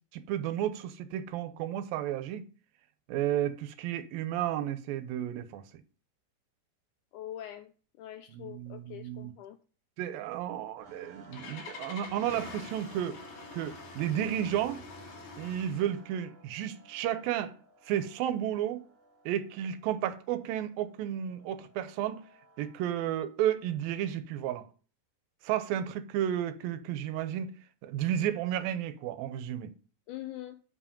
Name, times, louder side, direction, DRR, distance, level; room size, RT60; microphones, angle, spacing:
voice 1, 0.1-2.4 3.1-5.6 8.3-9.3 10.0-13.2 13.5-14.8 15.4-17.5 17.9-18.8 19.3-22.2 22.6-24.6 25.4-27.5 27.8-29.7, right 11 dB, 85° right, 2.6 m, -32 dB
voice 2, 7.1-7.7 8.0-9.6 30.1-30.6, left 12 dB, 85° left, 1.8 m, -43 dB
Engine starting, 10.8-16.0, left 4 dB, 65° left, 3.0 m, -46 dB
sound 1, 10.8-23.1, right 2 dB, 60° right, 1.5 m, -57 dB
8.0 x 5.0 x 5.2 m
omnidirectional pair, 4.1 m